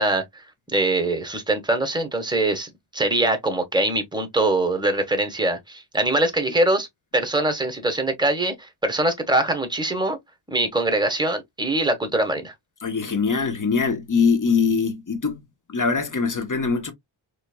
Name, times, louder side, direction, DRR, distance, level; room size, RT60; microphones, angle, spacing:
voice 1, 0.0-6.9 7.1-10.2 10.5-12.5, right 2 dB, 10° right, 1.2 m, -23 dB
voice 2, 12.8-15.4 15.7-16.9, left 5 dB, 40° left, 1.0 m, -22 dB
4.4 x 3.3 x 2.2 m
wide cardioid pair, 85°, 48 cm